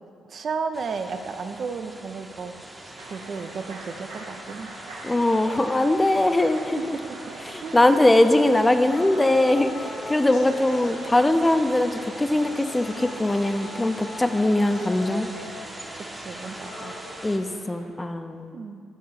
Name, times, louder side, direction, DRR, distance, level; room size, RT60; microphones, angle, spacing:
voice 1, 0.3-4.7 6.5-6.7 7.6-7.9 14.5-15.3 15.9-16.9 18.5-18.8, right 5 dB, 55° right, 8 dB, 0.4 m, -34 dB
sound 1, 0.7-17.4, right 1 dB, 15° right, 0.7 m, -42 dB
sound 2, 3.0-17.9, right 2 dB, 90° right, 0.7 m, -44 dB
voice 2, 5.0-7.0 7.5-15.3 17.2-18.6, left 1 dB, 20° left, 8 dB, 0.4 m, -21 dB
sound 3, 8.9-16.9, left 2 dB, 80° left, 1.1 m, -41 dB
8.5 x 3.1 x 3.8 m, 2.4 s
hypercardioid pair, 50°, 0 cm